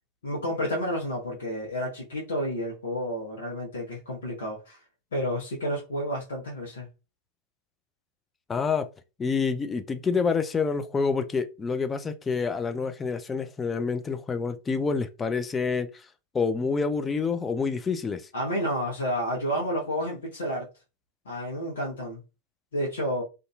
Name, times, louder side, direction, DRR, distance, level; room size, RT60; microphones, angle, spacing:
voice 1, 0.2-4.8 5.1-6.9 18.3-20.7 21.2-22.2 22.7-23.2, equal, 65° left, 1.0 m, -30 dB
voice 2, 8.5-8.9 9.2-16.0 16.3-18.2, left 5 dB, 15° left, 0.4 m, -27 dB
2.7 x 2.5 x 2.3 m
figure-of-eight pair, 90°, 0 cm